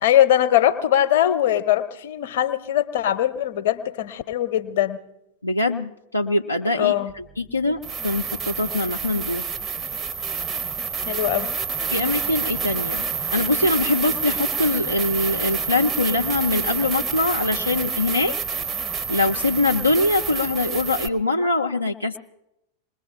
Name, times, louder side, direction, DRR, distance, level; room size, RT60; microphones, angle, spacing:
voice 1, 0.0-5.0 6.8-7.1 11.1-11.5, left 11 dB, 55° left, 11 dB, 0.8 m, -21 dB
voice 2, 5.4-9.4 11.9-13.0 13.3-18.4 19.1-22.2, left 2 dB, 85° left, 1 dB, 0.5 m, -23 dB
sound 1, 7.1-7.2 7.8-21.1, right 6 dB, 20° right, 0.8 m, -28 dB
26.5 x 20.5 x 2.5 m, 0.86 s
figure-of-eight pair, 90°, 0 cm